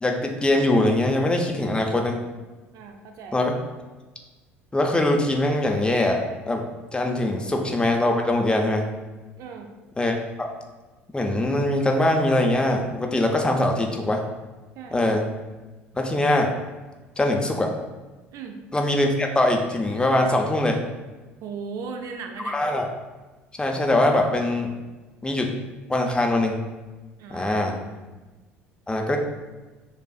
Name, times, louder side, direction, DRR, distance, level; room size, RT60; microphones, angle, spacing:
voice 1, 0.0-2.2 3.3-3.5 4.7-6.2 6.5-6.6 6.9-8.8 10.0-10.5 11.1-14.2 14.9-15.2 15.9-16.5 17.2-17.7 18.7-20.8 22.5-22.9 23.6-24.7 25.2-25.5 25.9-26.6 27.3-27.7 28.9-29.2, left 1 dB, 15° left, 2 dB, 0.6 m, -22 dB
voice 2, 2.7-3.4 9.4-9.7 14.8-15.0 18.3-18.6 21.4-22.6 27.2-28.1, right 5 dB, 50° right, 4 dB, 0.4 m, -37 dB
7.0 x 2.3 x 2.3 m, 1.2 s
figure-of-eight pair, 60°, 7 cm